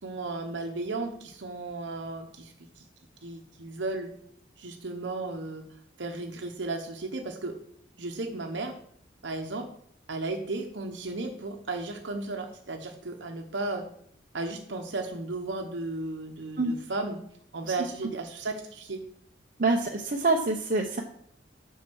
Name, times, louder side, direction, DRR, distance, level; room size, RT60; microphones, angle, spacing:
voice 1, 0.0-2.9 3.2-4.1 4.6-5.7 6.0-7.6 8.0-8.8 9.2-9.7 10.1-13.9 14.3-17.2 17.5-19.0, right 2 dB, 80° right, 4 dB, 1.0 m, -34 dB
voice 2, 19.6-21.0, right 3 dB, 50° right, 1 dB, 0.8 m, -25 dB
7.4 x 5.6 x 6.3 m, 0.66 s
head